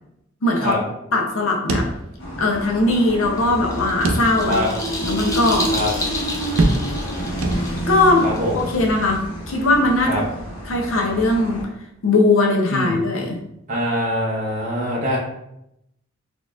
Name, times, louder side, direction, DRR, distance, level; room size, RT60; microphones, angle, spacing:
voice 1, 0.4-0.8 1.1-1.9 2.4-4.6 5.0-5.7 7.9-8.3 8.6-10.3 10.6-11.6 12.0-13.4, left 2 dB, 85° left, 1 dB, 0.6 m, -19 dB
sound 1, 1.7-2.6 2.9-3.0 4.0-4.7 5.2-5.3 6.6-7.1 7.4-8.1, right 2 dB, 85° right, 0.5 m, -23 dB
sound 2, 2.2-11.6, right 1 dB, 65° left, 1.1 m, -29 dB
sound 3, 3.4-9.2, left 2 dB, 15° left, 0.5 m, -31 dB
voice 2, 8.2-8.5 10.1-10.2 12.7-13.0 13.7-15.2, equal, 40° right, -5 dB, 0.7 m, -23 dB
4.1 x 2.9 x 2.4 m, 0.81 s
head